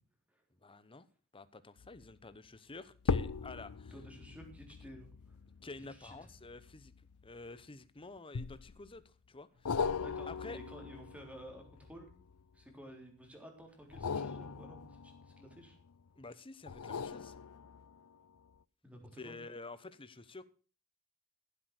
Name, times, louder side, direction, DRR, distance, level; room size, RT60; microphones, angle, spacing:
voice 1, 0.6-1.1 1.3-3.9 5.6-6.9 7.2-9.9 10.3-10.6 16.2-17.3 19.2-20.4, left 3 dB, 25° left, 0.9 m, -50 dB
sound 1, 1.8-2.1 3.0-7.6 8.3-9.0 9.6-12.6 13.8-15.9 16.7-18.1 18.6-18.7, left 5 dB, 85° left, 0.6 m, -40 dB
voice 2, 3.9-5.4 5.9-6.3 10.0-12.1 12.5-15.8 18.8-19.4, equal, 5° right, 3.6 m, -52 dB
15.0 x 8.0 x 6.5 m
head